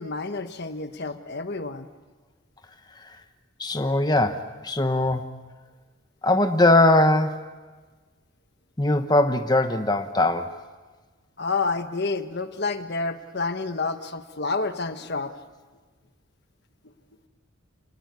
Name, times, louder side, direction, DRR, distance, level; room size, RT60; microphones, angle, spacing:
voice 1, 0.0-1.9 11.4-15.3, left 3 dB, 50° left, 9 dB, 1.2 m, -29 dB
voice 2, 3.6-5.3 6.2-7.4 8.8-10.6, left 2 dB, 20° left, 6 dB, 1.2 m, -21 dB
29.5 x 19.5 x 9.6 m, 1.3 s
head